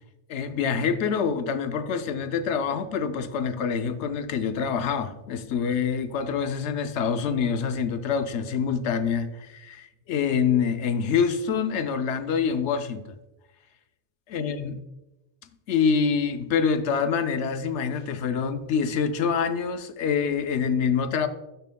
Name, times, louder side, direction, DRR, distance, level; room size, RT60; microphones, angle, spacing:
voice 1, 0.3-13.1 14.3-14.7 15.7-21.3, left 6 dB, 75° left, 10 dB, 0.9 m, -26 dB
11.5 x 7.0 x 2.2 m, 1.0 s
omnidirectional pair, 1.2 m